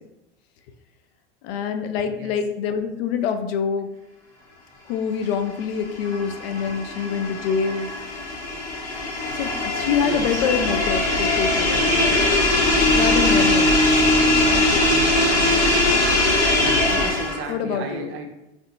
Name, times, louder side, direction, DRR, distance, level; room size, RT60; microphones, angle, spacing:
voice 1, 1.4-3.9 4.9-7.9 9.3-11.9 13.0-13.8 14.5-14.9 17.5-18.1, left 6 dB, 65° left, 7 dB, 0.5 m, -25 dB
voice 2, 2.0-2.4 10.0-10.4 16.9-18.3, right 4 dB, 40° right, 4 dB, 0.6 m, -33 dB
sound 1, 5.6-17.5, left 2 dB, 85° left, 0.9 m, -20 dB
3.3 x 2.7 x 2.6 m, 0.89 s
hypercardioid pair, 90°, 32 cm